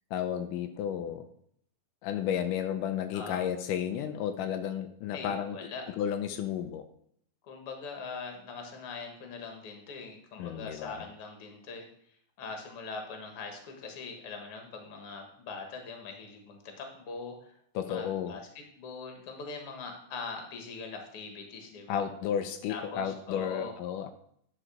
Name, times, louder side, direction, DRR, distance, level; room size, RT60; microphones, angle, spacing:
voice 1, 0.1-1.3 2.0-5.6 6.0-6.9 10.4-11.1 17.8-18.4 21.9-24.1, left 9 dB, 85° left, 7 dB, 2.2 m, -32 dB
voice 2, 5.1-5.9 7.4-11.9 12.4-17.5 17.8-18.4 18.8-22.0 22.7-23.7, left 4 dB, 50° left, 3 dB, 2.1 m, -42 dB
11.0 x 5.1 x 4.9 m, 0.68 s
omnidirectional pair, 3.8 m